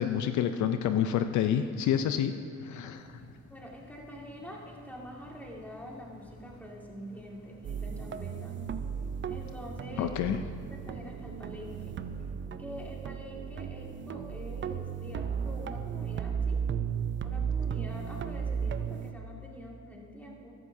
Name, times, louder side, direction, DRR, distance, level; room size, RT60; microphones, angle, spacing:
voice 1, 0.0-2.3 2.6-3.0 10.0-10.4, left 9 dB, 70° left, 8 dB, 0.5 m, -28 dB
sound 1, 2.9-12.3, equal, 55° left, 1.9 m, -53 dB
voice 2, 3.5-8.5 9.3-10.1 10.7-11.9 12.6-16.6 17.2-20.5, equal, 5° left, -2 dB, 2.0 m, -45 dB
sound 2, 7.6-19.1, right 7 dB, 40° right, 0.5 m, -35 dB
14.0 x 11.5 x 2.7 m, 2.3 s
cardioid pair, 90°, 30 cm